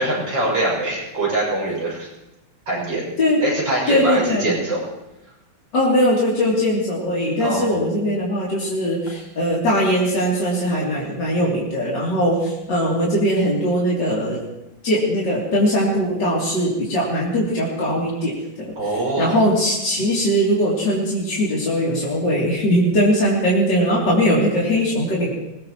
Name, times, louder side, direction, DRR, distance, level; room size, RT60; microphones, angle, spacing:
voice 1, 0.0-2.1 2.7-3.0 3.4-4.8 7.4-7.7 18.8-19.5, right 2 dB, 70° right, -5 dB, 7.3 m, -23 dB
voice 2, 3.9-4.5 5.7-14.4 14.8-18.7 19.2-25.3, equal, 65° left, -6 dB, 3.7 m, -20 dB
22.0 x 19.5 x 3.1 m, 0.90 s
omnidirectional pair, 2.1 m